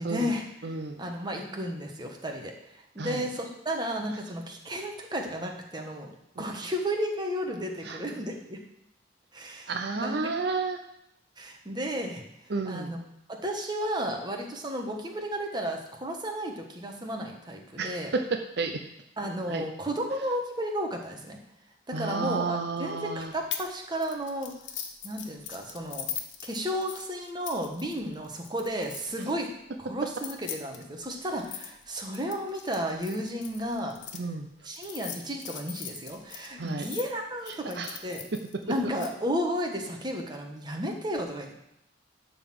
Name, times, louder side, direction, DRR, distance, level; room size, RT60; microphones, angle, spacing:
voice 1, 0.0-0.4 1.0-6.1 6.4-8.6 9.3-10.2 11.4-12.2 12.7-13.0 13.3-18.1 19.2-21.4 21.9-24.5 25.0-26.1 26.4-29.5 29.8-34.0 34.6-38.2 38.6-41.5, equal, 25° right, 2 dB, 1.4 m, -33 dB
voice 2, 0.6-1.0 3.0-3.2 6.4-6.5 7.8-8.0 9.7-10.8 12.5-12.9 17.8-18.8 19.5-19.7 21.9-23.3 34.1-34.5 36.6-36.9 37.5-38.0, right 4 dB, 65° right, 5 dB, 0.6 m, -32 dB
sound 1, 23.5-23.7 24.0-29.3 30.1-34.2 34.7-37.0 37.5-39.1, left 9 dB, 85° left, 1.1 m, -40 dB
11.5 x 4.1 x 7.7 m, 0.79 s
head